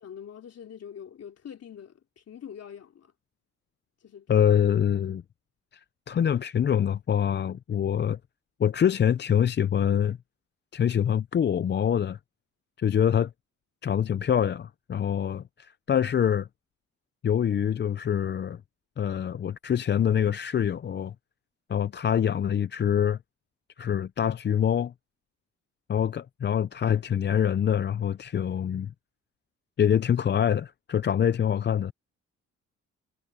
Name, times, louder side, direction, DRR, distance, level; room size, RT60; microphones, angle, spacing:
voice 1, 0.0-3.1 4.0-4.5, left 8 dB, 55° left, 3.2 m, -44 dB
voice 2, 4.3-5.2 6.1-8.2 8.6-10.2 10.7-12.2 12.8-13.3 13.8-16.5 17.2-18.6 19.0-21.1 21.7-23.2 23.8-24.9 25.9-28.9 29.8-31.9, left 9 dB, 35° left, 0.5 m, -25 dB
cardioid pair, 90°, 30 cm